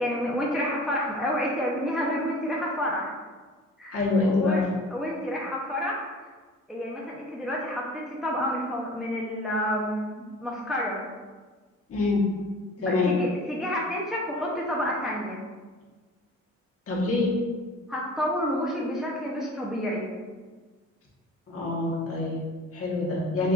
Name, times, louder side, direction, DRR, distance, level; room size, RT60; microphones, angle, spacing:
voice 1, 0.0-3.1 3.8-4.7 4.9-6.1 6.7-11.0 12.8-15.4 17.9-20.0, equal, ahead, -4 dB, 0.6 m, -29 dB
voice 2, 3.9-4.7 11.9-12.2 12.8-13.2 16.9-17.4 21.5-23.5, left 3 dB, 50° left, -5 dB, 1.3 m, -25 dB
5.8 x 2.4 x 2.4 m, 1.4 s
cardioid pair, 90°, 30 cm